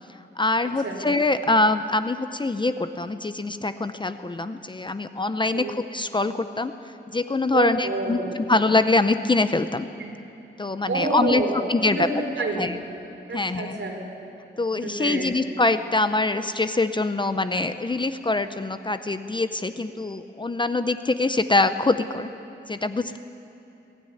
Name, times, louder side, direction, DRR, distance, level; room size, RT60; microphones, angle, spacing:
voice 1, 0.4-6.7 7.1-9.9 10.6-11.4 11.7-12.1 12.6-12.8 13.3-13.8 14.6-22.3 22.7-23.2, left 2 dB, 25° left, 10 dB, 0.5 m, -24 dB
voice 2, 7.5-8.2 10.0-10.1 10.9-11.5 12.0-12.7 13.3-14.0 14.8-15.2, right 2 dB, 70° right, 0 dB, 4.2 m, -28 dB
21.5 x 12.5 x 9.7 m, 2.9 s
wide cardioid pair, 160°, 20 cm